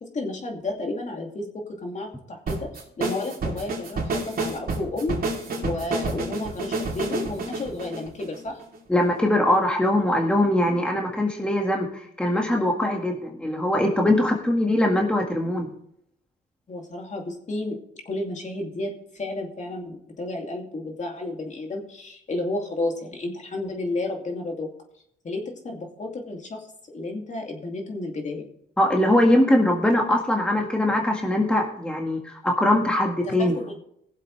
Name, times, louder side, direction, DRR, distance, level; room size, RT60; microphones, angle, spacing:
voice 1, 0.0-1.5 1.8-5.2 5.6-8.6 16.7-17.8 18.0-24.7 25.2-28.5 33.2-33.8, left 2 dB, 35° left, 2 dB, 2.6 m, -32 dB
sound 1, 2.5-8.8, right 3 dB, 50° right, 3.1 m, -29 dB
voice 2, 8.9-15.7 28.8-33.6, left 1 dB, 5° left, 1 dB, 1.8 m, -22 dB
20.0 x 7.6 x 3.3 m, 0.71 s
cardioid pair, 90°, 20 cm